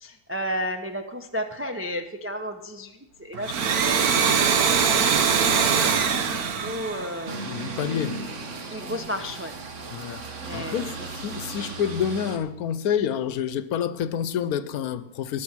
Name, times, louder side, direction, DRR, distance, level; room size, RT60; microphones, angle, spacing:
voice 1, 0.0-4.0 4.3-5.1 5.5-7.5 8.7-9.5 10.4-10.9, equal, 15° right, 0.5 m, -33 dB
Domestic sounds home sounds, 3.3-7.8, right 6 dB, 85° right, 1.5 m, -22 dB
sound 1, 7.2-12.4, right 3 dB, 55° right, 1.6 m, -36 dB
voice 2, 7.5-8.1 9.9-10.9 11.1-15.4, left 8 dB, 85° left, 1.2 m, -28 dB
19.5 x 6.9 x 6.1 m
omnidirectional pair, 1.5 m